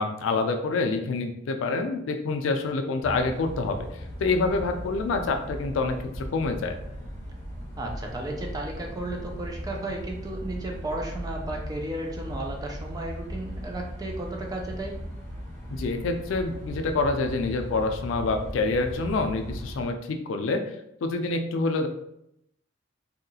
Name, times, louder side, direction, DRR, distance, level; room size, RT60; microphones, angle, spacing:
voice 1, 0.0-3.8 4.2-6.8 15.7-20.6 21.0-21.9, left 3 dB, 85° left, 6 dB, 0.4 m, -27 dB
sound 1, 3.0-19.8, equal, 15° left, 1.0 m, -38 dB
voice 2, 7.8-15.0, right 1 dB, 20° right, 1 dB, 0.4 m, -34 dB
2.7 x 2.3 x 2.6 m, 0.79 s
head